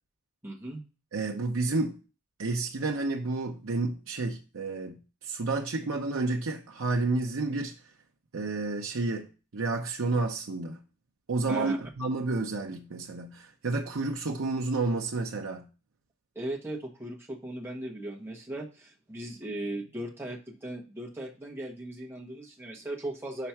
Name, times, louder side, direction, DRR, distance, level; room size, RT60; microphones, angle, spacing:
voice 1, 0.4-0.8 11.5-11.8 16.3-23.5, right 1 dB, 10° right, 1.3 m, -38 dB
voice 2, 1.1-2.0 2.4-7.8 8.3-10.8 11.3-15.6, right 3 dB, 80° right, 0.7 m, -30 dB
5.9 x 4.3 x 5.8 m
head